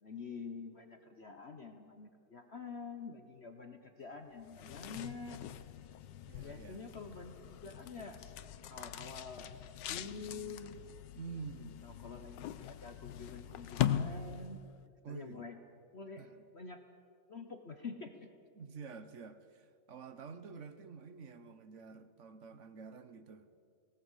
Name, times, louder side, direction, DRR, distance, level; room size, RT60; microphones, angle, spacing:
voice 1, 0.0-5.4 6.4-8.2 8.7-9.5 9.9-10.8 11.8-14.6 15.1-15.5 15.9-16.3 16.5-16.8 17.3-18.3, left 4 dB, 40° left, 6 dB, 1.1 m, -47 dB
sound 1, 4.4-14.7, left 10 dB, 80° left, 1.4 m, -41 dB
voice 2, 6.3-6.8 11.1-11.8 15.0-15.4 16.1-16.4 18.5-23.5, right 5 dB, 45° right, 11 dB, 1.2 m, -48 dB
19.0 x 18.0 x 8.2 m, 2.4 s
omnidirectional pair, 1.9 m